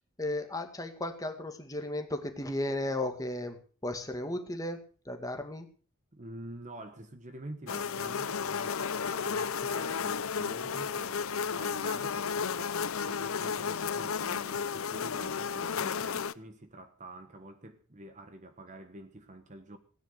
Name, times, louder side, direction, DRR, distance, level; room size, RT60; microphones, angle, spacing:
voice 1, 0.2-4.8 5.1-5.7, left 1 dB, 15° left, 2.1 m, -35 dB
voice 2, 6.1-19.8, right 1 dB, 35° right, 1.4 m, -47 dB
sound 1, 7.7-16.3, left 6 dB, 70° left, 0.7 m, -33 dB
16.5 x 9.9 x 6.6 m
head